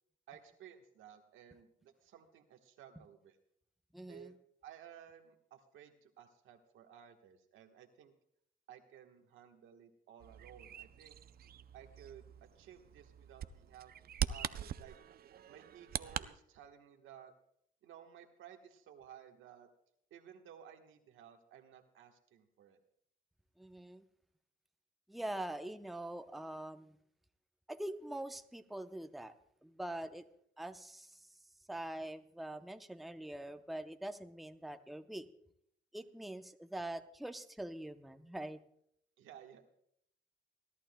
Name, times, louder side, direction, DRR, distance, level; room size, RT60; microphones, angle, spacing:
voice 1, 0.3-3.4 4.1-4.4 4.6-8.1 8.7-11.2 11.7-15.0 15.5-17.3 17.8-19.7 20.1-22.8 39.2-39.6, right 9 dB, 85° right, 4 dB, 1.3 m, -56 dB
voice 2, 3.9-4.3 23.6-24.0 25.1-27.0 27.7-29.3 29.6-30.2 30.6-31.3 31.7-35.3 35.9-38.6, right 1 dB, ahead, 8 dB, 0.6 m, -44 dB
Bird vocalization bird call bird song, 10.2-16.3, right 10 dB, 50° right, 0.5 m, -43 dB
30.0 x 11.5 x 2.2 m, 0.71 s
cardioid pair, 90°, 20 cm